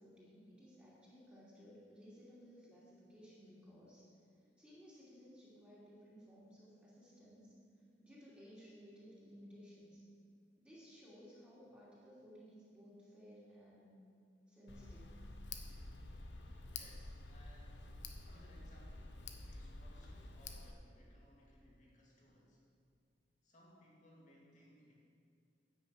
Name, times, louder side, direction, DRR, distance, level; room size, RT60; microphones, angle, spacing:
voice 1, 0.0-4.0 4.6-7.5 8.0-10.0 10.6-14.0 14.5-15.1, equal, 10° right, -10 dB, 2.9 m, -58 dB
Tick, 14.7-20.7, left 3 dB, 85° left, 0.9 m, -49 dB
voice 2, 16.6-17.9 18.2-22.6 23.4-25.0, equal, 45° left, -3 dB, 2.5 m, -65 dB
10.0 x 6.3 x 7.6 m, 2.4 s
head